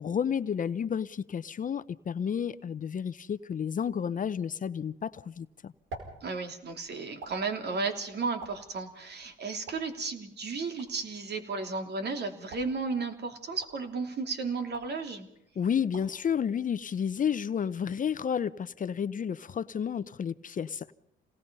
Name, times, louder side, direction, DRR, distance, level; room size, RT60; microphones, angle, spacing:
voice 1, 0.0-5.7 15.6-20.9, left 7 dB, 40° left, 0.7 m, -31 dB
sound 1, 5.2-17.4, right 2 dB, 80° right, 5.0 m, -51 dB
voice 2, 6.2-15.3, right 4 dB, 55° right, 3.1 m, -34 dB
28.0 x 19.0 x 5.5 m
cardioid pair, 90°, 20 cm